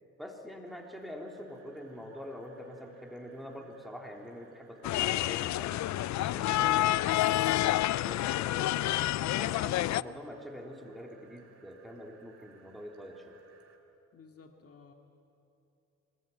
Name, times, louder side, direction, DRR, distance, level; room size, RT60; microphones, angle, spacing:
voice 1, 0.2-9.0 9.4-13.4, equal, ahead, 1 dB, 3.7 m, -45 dB
sound 1, 0.6-13.8, right 6 dB, 55° right, 3.6 m, -63 dB
sound 2, 4.8-10.0, left 15 dB, 65° left, 0.5 m, -28 dB
voice 2, 14.1-14.9, left 5 dB, 50° left, 3 dB, 2.3 m, -55 dB
24.5 x 20.5 x 9.4 m, 2.8 s
cardioid pair, 90°, 30 cm